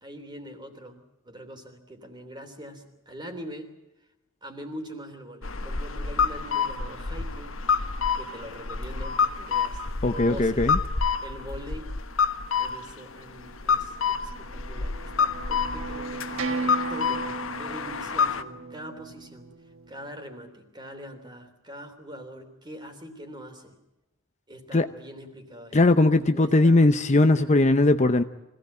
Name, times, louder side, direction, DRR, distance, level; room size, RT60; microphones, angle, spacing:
voice 1, 0.0-3.7 4.4-7.6 8.1-10.7 11.2-11.9 12.6-19.5 19.9-23.8 24.5-26.8 27.2-27.5, equal, 20° right, 6 dB, 3.3 m, -43 dB
sound 1, 5.4-18.4, left 5 dB, 65° left, 1.3 m, -28 dB
voice 2, 10.0-10.8 24.7-24.9 25.7-28.2, left 2 dB, 30° left, 9 dB, 0.7 m, -19 dB
sound 2, 14.1-20.1, right 4 dB, 65° right, 1.6 m, -36 dB
25.0 x 17.0 x 8.6 m, 0.99 s
head